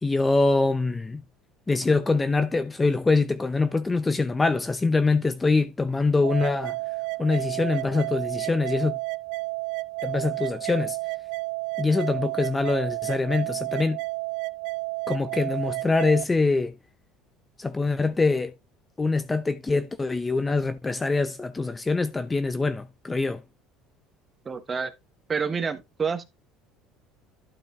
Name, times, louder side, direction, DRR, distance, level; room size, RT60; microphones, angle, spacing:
voice 1, 0.0-1.2 1.7-6.8 7.2-9.0 10.0-11.0 11.8-14.0 15.1-16.7 17.6-18.5 19.0-23.4, left 3 dB, 15° left, 0.7 m, -24 dB
sound 1, 6.2-16.2, right 24 dB, 75° right, 0.4 m, -31 dB
voice 2, 24.4-24.9 25.3-26.2, right 5 dB, 25° right, 1.2 m, -28 dB
12.0 x 5.0 x 3.6 m
cardioid pair, 130°, 0 cm